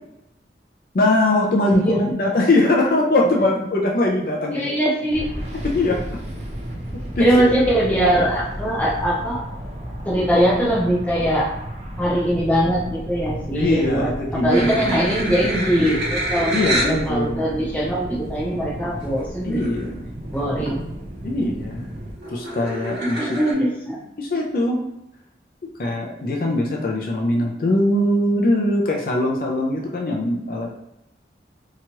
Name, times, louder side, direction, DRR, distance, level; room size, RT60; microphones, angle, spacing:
voice 1, 0.9-1.9 2.2-4.7 5.6-6.0 7.2-7.3 13.5-15.0 16.5-17.4 19.4-20.1 21.2-21.9 22.3-23.3 24.2-24.8 25.8-30.7, left 1 dB, 55° left, -1 dB, 0.4 m, -21 dB
voice 2, 1.7-2.2 3.2-3.5 4.5-5.3 7.2-9.4 10.1-11.5 12.0-19.7 20.3-20.9 23.0-24.0, equal, 10° left, -5 dB, 0.6 m, -21 dB
sound 1, 5.1-22.1, equal, 35° right, 0.5 m, -33 dB
sound 2, 14.5-17.0 17.7-17.8 19.2-19.3 19.5-19.9 20.3-20.8 21.2-23.5, right 1 dB, 75° right, 1.0 m, -28 dB
2.9 x 2.3 x 2.9 m, 0.87 s
head